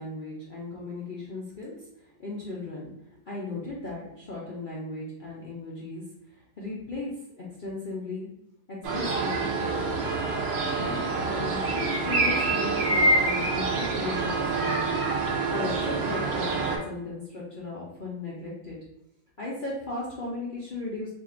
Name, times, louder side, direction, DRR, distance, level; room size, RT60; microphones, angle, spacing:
voice 1, 0.0-1.7 2.2-2.9 3.3-6.0 6.6-7.1 7.4-8.3 8.7-9.8 10.8-15.0 15.5-18.8 19.4-21.1, left 2 dB, 70° left, -6 dB, 0.4 m, -36 dB
sound 1, 8.8-16.8, right 3 dB, 60° right, 0.6 m, -26 dB
2.7 x 2.5 x 4.2 m, 0.84 s
omnidirectional pair, 1.8 m